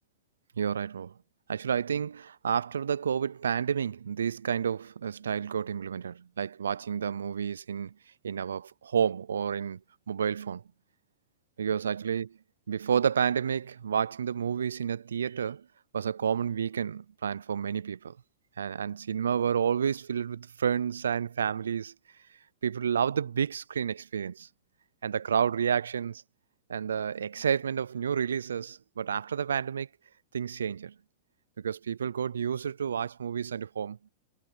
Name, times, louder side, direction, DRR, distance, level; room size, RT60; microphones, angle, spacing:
voice 1, 0.6-1.1 1.5-7.9 8.2-9.8 10.1-10.6 11.6-12.3 12.7-15.7 15.9-18.2 18.6-21.9 22.6-24.5 25.0-26.2 26.7-29.9 30.3-30.9 31.6-34.0, right 7 dB, 85° right, 0.4 m, -30 dB
hypercardioid pair, 115°, 0 cm